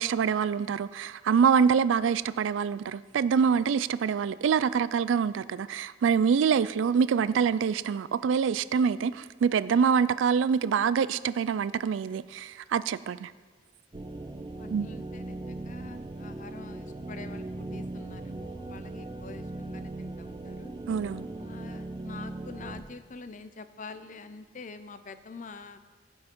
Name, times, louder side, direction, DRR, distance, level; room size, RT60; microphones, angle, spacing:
voice 1, 0.0-13.3 14.7-14.9 20.9-21.3, right 6 dB, 80° right, 16 dB, 0.3 m, -25 dB
sound 1, 13.9-22.8, right 2 dB, 25° right, 0.5 m, -39 dB
voice 2, 14.6-20.7 21.4-25.8, left 4 dB, 40° left, 11 dB, 0.6 m, -46 dB
15.5 x 5.5 x 5.3 m, 1.5 s
head